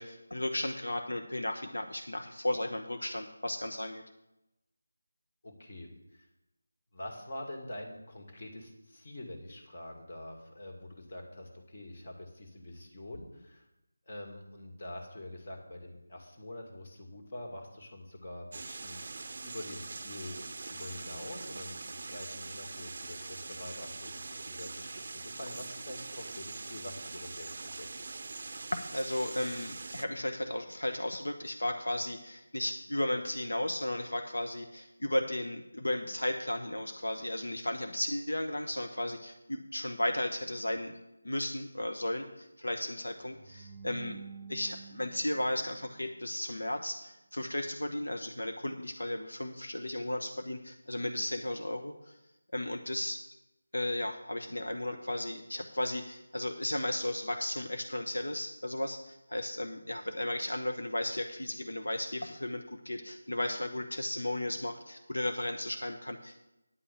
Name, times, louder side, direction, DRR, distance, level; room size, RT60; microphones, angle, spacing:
voice 1, 0.0-4.0 28.7-41.0 41.2-44.2 44.5-52.1 52.5-53.2 53.7-66.4, left 1 dB, 75° left, 5 dB, 0.9 m, -35 dB
voice 2, 5.4-6.3 6.9-13.6 14.1-19.1 19.4-28.2, left 1 dB, 40° left, 2 dB, 2.2 m, -45 dB
sound 1, 18.5-30.1, right 3 dB, 45° right, 0.6 m, -43 dB
sound 2, 43.2-46.4, right 6 dB, 5° right, 1.4 m, -49 dB
9.8 x 5.6 x 8.4 m, 0.93 s
figure-of-eight pair, 160°, 0 cm